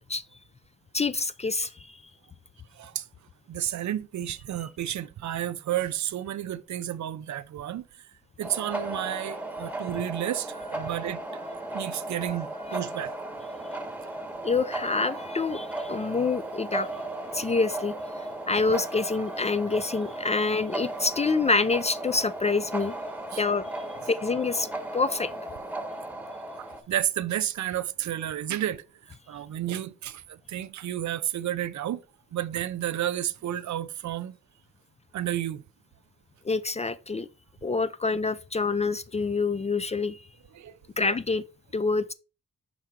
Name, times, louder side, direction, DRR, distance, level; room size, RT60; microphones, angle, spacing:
voice 1, 0.9-2.0 12.7-12.8 14.4-16.9 17.3-17.9 18.5-22.9 23.4-23.7 24.1-24.7 24.9-25.3 36.4-37.3 37.6-40.2 41.0-41.4 41.7-42.1, left 4 dB, 20° left, 0.4 m, -26 dB
voice 2, 2.7-3.1 3.5-8.1 8.4-11.2 11.7-13.1 17.4-17.5 23.3-23.4 26.6-32.0 32.3-34.4 35.1-35.6 40.5-40.8 41.0-41.1, right 12 dB, 65° right, 0.5 m, -31 dB
sound 1, 8.4-26.8, right 1 dB, 5° right, 1.2 m, -36 dB
5.9 x 4.4 x 3.6 m
cardioid pair, 70°, 32 cm